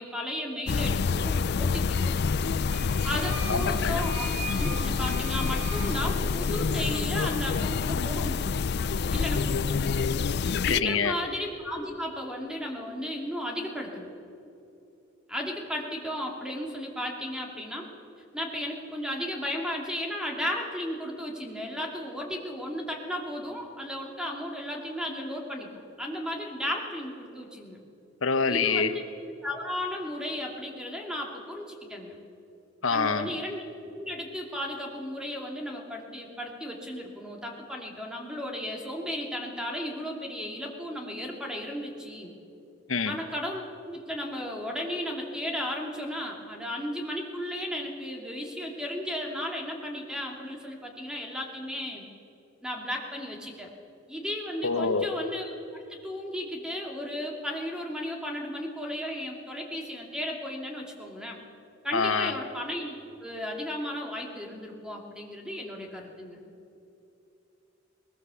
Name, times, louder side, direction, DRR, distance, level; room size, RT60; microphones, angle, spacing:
voice 1, 0.0-2.2 3.0-4.2 4.5-8.5 9.1-10.0 10.6-14.1 15.3-17.9 18.3-25.7 26.0-27.8 28.5-29.0 29.4-32.2 32.9-33.6 34.0-42.3 43.1-52.1 52.6-53.7 54.1-55.5 55.9-61.4 61.8-66.4, left 1 dB, 5° right, 0 dB, 2.7 m, -34 dB
sound 1, 0.7-10.8, left 5 dB, 55° left, 0.4 m, -27 dB
sound 2, 2.6-6.8, right 3 dB, 55° right, 3.2 m, -40 dB
voice 2, 3.5-4.0 10.7-11.1 28.2-28.9 32.8-33.3 42.9-43.1 54.6-55.1 61.9-62.3, left 5 dB, 80° left, 9 dB, 1.0 m, -26 dB
20.5 x 20.0 x 7.1 m, 2.8 s
head